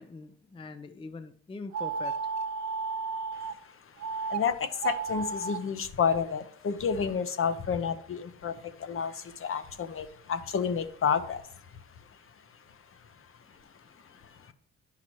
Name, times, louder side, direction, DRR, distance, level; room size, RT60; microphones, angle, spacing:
voice 1, 0.0-2.3 13.4-14.5, left 3 dB, 20° left, 10 dB, 0.5 m, -45 dB
sound 1, 1.7-3.5 4.0-4.4 4.7-5.6, right 4 dB, 65° right, 0.8 m, -33 dB
voice 2, 4.3-11.4, left 6 dB, 45° left, 11 dB, 0.8 m, -30 dB
9.8 x 5.8 x 3.0 m, 0.64 s
cardioid pair, 90°, 30 cm